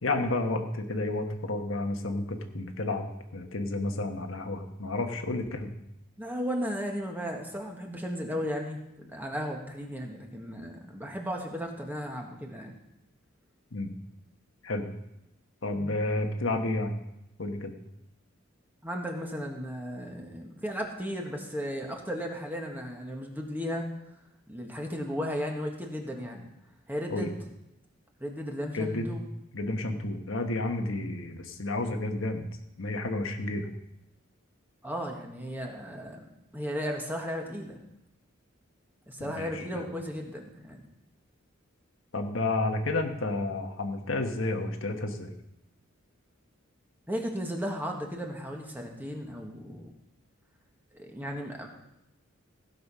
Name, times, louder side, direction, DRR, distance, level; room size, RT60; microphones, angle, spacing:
voice 1, 0.0-5.7 13.7-13.9 14.6-14.9 15.6-16.9 17.4-17.7 27.1-27.3 28.7-29.1 29.5-32.5 32.8-33.7 39.4-39.8 42.1-45.3, left 2 dB, 70° left, 4 dB, 1.3 m, -31 dB
voice 2, 6.2-12.8 15.7-16.0 18.8-23.8 24.5-26.5 26.9-27.4 28.2-29.2 34.8-36.3 36.5-37.8 39.1-40.8 47.1-49.9 51.0-51.7, equal, 10° right, 1 dB, 1.5 m, -35 dB
16.0 x 6.7 x 5.6 m, 0.84 s
head